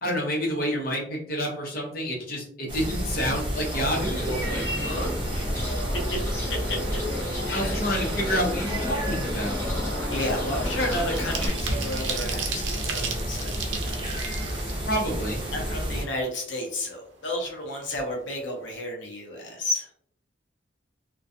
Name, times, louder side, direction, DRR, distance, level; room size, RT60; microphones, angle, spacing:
voice 1, 0.0-5.1 7.5-9.6 14.9-15.4, equal, 50° left, -1 dB, 0.8 m, -29 dB
sound 1, 2.7-16.0, equal, 25° right, 0.8 m, -30 dB
voice 2, 3.7-5.1 5.3-5.9 6.7-6.8 7.4-7.8 10.1-14.0 15.5-19.9, left 1 dB, 80° left, 0 dB, 0.7 m, -32 dB
Bird, 3.9-11.5, left 1 dB, 15° left, 0.7 m, -33 dB
sound 2, 10.4-15.9 16.2-16.3 16.6-17.6 17.9-18.1 18.4-18.7, right 5 dB, 80° right, 0.5 m, -36 dB
2.3 x 2.2 x 2.6 m, 0.65 s
head